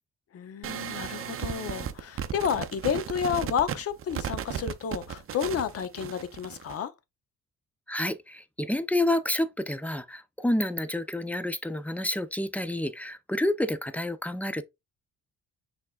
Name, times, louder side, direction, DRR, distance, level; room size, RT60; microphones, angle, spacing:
voice 1, 0.3-6.9, left 8 dB, 50° left, 0.7 m, -31 dB
sound 1, 0.6-6.8, right 9 dB, 45° right, 0.5 m, -35 dB
voice 2, 7.9-14.6, left 1 dB, 5° left, 0.4 m, -29 dB
5.8 x 3.5 x 2.3 m
cardioid pair, 90°, 30 cm